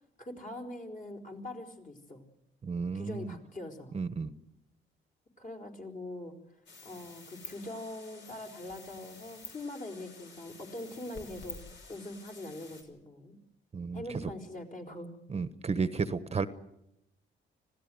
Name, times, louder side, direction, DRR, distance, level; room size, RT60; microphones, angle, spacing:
voice 1, 0.2-2.2 2.9-4.0 5.4-6.3 6.8-11.6 11.9-13.4 13.9-15.1, left 1 dB, 40° left, 3 dB, 4.8 m, -42 dB
voice 2, 2.6-3.4 3.9-4.3 13.7-14.0 15.3-16.5, right 5 dB, 30° right, 13 dB, 1.1 m, -32 dB
sound 1, 6.7-12.8, left 4 dB, 65° left, 5.5 m, -50 dB
26.0 x 16.5 x 7.9 m, 0.83 s
cardioid pair, 90°, 20 cm